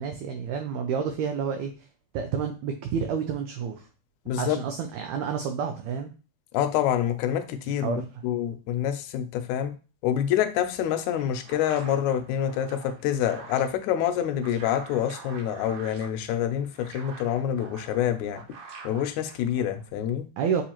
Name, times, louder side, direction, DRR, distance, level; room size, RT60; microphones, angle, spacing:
voice 1, 0.0-1.9 2.1-3.9 4.4-6.1 7.8-8.0 20.4-20.6, right 7 dB, 85° right, 5 dB, 1.6 m, -29 dB
voice 2, 4.3-4.6 6.5-9.8 10.0-18.4 18.8-20.3, left 10 dB, 80° left, 8 dB, 1.7 m, -27 dB
sound 1, 10.6-19.9, right 4 dB, 65° right, 1.9 m, -47 dB
7.0 x 2.5 x 2.9 m, 0.34 s
omnidirectional pair, 3.7 m